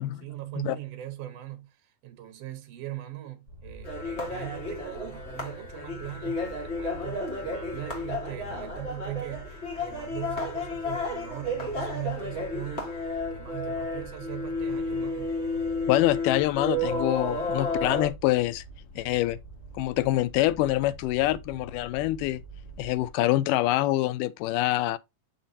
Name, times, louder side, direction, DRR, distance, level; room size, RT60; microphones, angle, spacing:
voice 1, 0.0-15.3, right 14 dB, 60° right, 1.8 m, -40 dB
sound 1, 3.5-23.1, equal, 10° left, 5.0 m, -46 dB
sound 2, 3.8-18.1, left 2 dB, 30° left, 1.4 m, -32 dB
voice 2, 15.9-18.6 19.0-19.4 19.8-22.4 22.8-25.0, left 16 dB, 80° left, 2.1 m, -25 dB
7.4 x 5.8 x 2.7 m
omnidirectional pair, 3.9 m